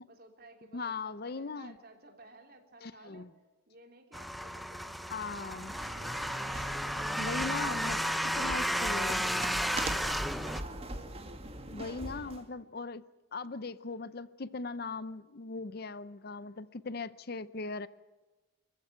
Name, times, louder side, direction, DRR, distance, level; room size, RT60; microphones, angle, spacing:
voice 1, 0.1-3.3 3.7-5.6 6.8-10.0, right 2 dB, 50° right, 3.4 m, -56 dB
voice 2, 0.7-1.8 2.8-3.3 5.1-5.7 7.2-8.0 8.4-9.2 11.7-13.0 13.3-17.9, left 3 dB, 50° left, 0.7 m, -39 dB
sound 1, 4.1-10.6, equal, ahead, 0.8 m, -33 dB
sound 2, 5.3-12.5, right 2 dB, 30° right, 2.0 m, -41 dB
25.0 x 15.0 x 9.1 m
head